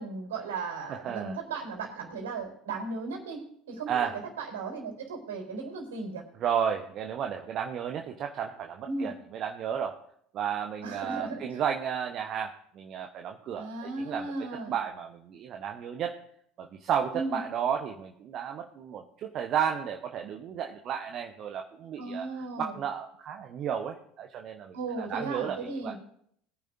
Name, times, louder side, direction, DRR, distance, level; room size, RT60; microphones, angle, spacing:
voice 1, 0.0-4.1 4.4-6.2 8.9-9.1 10.8-11.6 13.6-14.7 17.1-17.4 22.0-22.8 24.7-25.9, right 3 dB, 70° right, 1 dB, 3.7 m, -36 dB
voice 2, 0.9-1.4 3.9-4.2 6.4-10.0 10.3-16.1 16.6-25.9, right 8 dB, 45° right, 4 dB, 1.0 m, -33 dB
21.0 x 10.0 x 2.7 m, 0.66 s
figure-of-eight pair, 65°, 0 cm